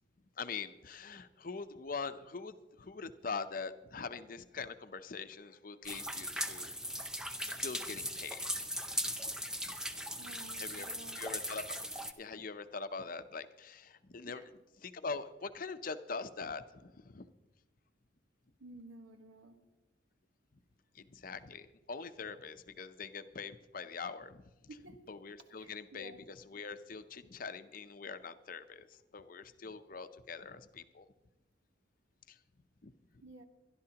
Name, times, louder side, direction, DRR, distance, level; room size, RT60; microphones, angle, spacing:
voice 1, 0.4-6.7 7.6-8.5 9.0-9.2 10.6-10.9 11.1-14.4 14.8-17.3 20.9-24.5 25.1-31.1 32.3-32.4 32.8-32.9, left 4 dB, 45° left, 11 dB, 0.6 m, -43 dB
sound 1, 5.8-12.1, equal, 5° right, 0.5 m, -39 dB
voice 2, 10.1-11.3 14.3-14.5 18.6-19.6 24.7-25.0 25.6-26.2 33.2-33.4, right 2 dB, 80° right, 5 dB, 1.4 m, -53 dB
23.5 x 11.5 x 2.9 m, 1.1 s
head